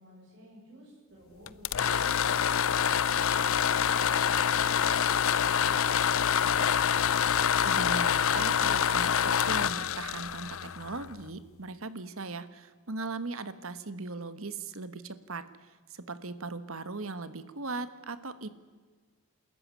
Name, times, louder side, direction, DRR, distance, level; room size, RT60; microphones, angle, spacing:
voice 1, 0.0-6.7, right 1 dB, 50° right, -5 dB, 7.0 m, -52 dB
sound 1, 1.5-11.3, left 8 dB, 70° left, 0.6 m, -26 dB
voice 2, 7.6-15.4 15.9-18.5, right 3 dB, 70° right, 13 dB, 1.4 m, -38 dB
28.0 x 14.0 x 9.7 m, 1.5 s
head